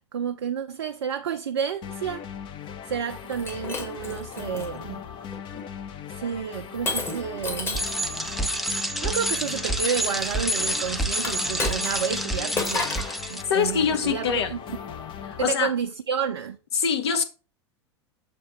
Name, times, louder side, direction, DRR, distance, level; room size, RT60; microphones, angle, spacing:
voice 1, 0.0-2.2 2.8-5.1 6.1-7.9 9.0-12.9 13.3-14.6 15.4-16.6, right 7 dB, 65° right, 0.5 m, -30 dB
sound 1, 1.8-15.5, left 8 dB, 30° left, 0.8 m, -39 dB
Shatter, 3.3-4.7 5.3-5.7 6.9-8.0 11.2-12.2 12.6-13.2, left 3 dB, 15° left, 1.5 m, -31 dB
Bicycle, 7.7-13.4, right 1 dB, ahead, 0.6 m, -28 dB
voice 2, 13.5-14.5 15.2-15.7 16.7-17.2, left 7 dB, 60° left, 1.1 m, -24 dB
6.7 x 3.3 x 5.9 m
figure-of-eight pair, 85°, 15 cm